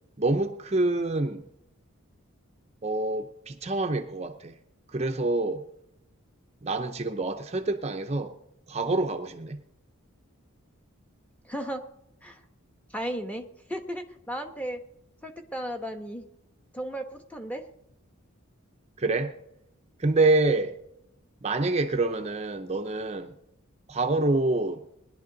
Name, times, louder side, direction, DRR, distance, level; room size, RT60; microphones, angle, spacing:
voice 1, 0.2-1.4 2.8-4.5 4.9-5.6 6.6-8.3 8.7-9.6 19.0-19.3 20.0-20.7 21.4-23.3 23.9-24.8, right 2 dB, 30° right, 6 dB, 0.6 m, -26 dB
voice 2, 11.5-11.8 12.2-12.4 12.9-14.8 15.2-16.2 16.7-17.6, equal, 5° left, 5 dB, 1.1 m, -35 dB
19.5 x 11.0 x 3.9 m, 0.79 s
head